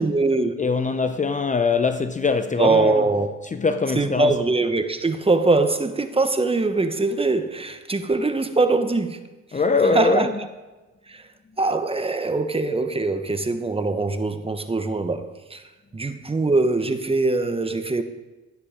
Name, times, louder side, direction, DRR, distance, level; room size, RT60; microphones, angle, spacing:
voice 1, 0.0-0.5 2.6-3.3 3.9-9.3 9.9-10.3 11.1-11.2 11.6-15.6 15.9-18.0, right 3 dB, 20° right, 1.1 m, -22 dB
voice 2, 0.6-3.0 3.5-4.3 9.5-10.3, left 4 dB, 25° left, 0.7 m, -22 dB
13.0 x 9.6 x 5.1 m
cardioid pair, 90°, 30 cm